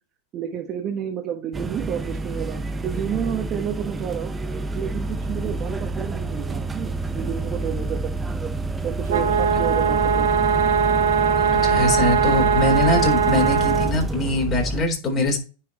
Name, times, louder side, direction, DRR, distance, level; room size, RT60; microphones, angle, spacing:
voice 1, 0.3-4.4 4.7-8.1 8.8-10.3, right 9 dB, 35° right, 1 dB, 1.2 m, -30 dB
sound 1, 1.5-14.8, right 2 dB, 15° right, 0.8 m, -28 dB
sound 2, 9.1-13.9, right 7 dB, 85° right, 1.4 m, -20 dB
voice 2, 11.6-15.4, left 2 dB, 30° left, 2 dB, 3.8 m, -22 dB
10.0 x 4.6 x 2.9 m, 0.34 s
hypercardioid pair, 115°, 0 cm